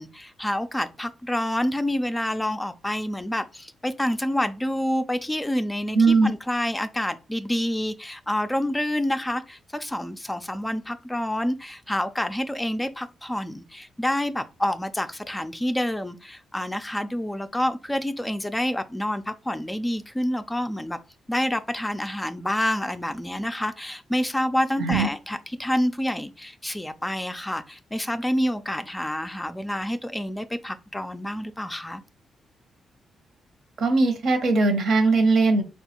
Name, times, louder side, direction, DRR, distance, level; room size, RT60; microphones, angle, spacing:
voice 1, 0.0-21.0 21.3-32.0, left 1 dB, 10° left, 0.4 m, -28 dB
voice 2, 5.9-6.3 24.8-25.1 33.8-35.6, right 3 dB, 70° right, 0.9 m, -19 dB
3.5 x 2.3 x 4.3 m
cardioid pair, 80°, 0 cm